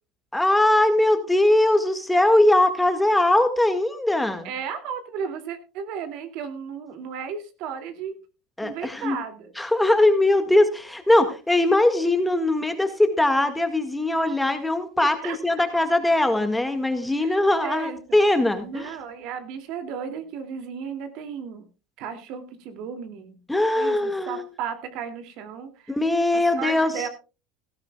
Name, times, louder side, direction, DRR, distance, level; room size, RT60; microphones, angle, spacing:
voice 1, 0.3-4.5 8.6-9.2 9.6-18.9 23.5-24.4 25.9-26.9, left 1 dB, 5° left, 8 dB, 1.8 m, -21 dB
voice 2, 4.4-8.2 8.6-9.5 15.0-15.7 17.2-18.2 18.6-21.6 22.0-23.4 23.8-26.0 26.3-27.1, right 7 dB, 65° right, 8 dB, 2.5 m, -34 dB
17.0 x 14.0 x 2.3 m, 0.32 s
supercardioid pair, 125°, 0 cm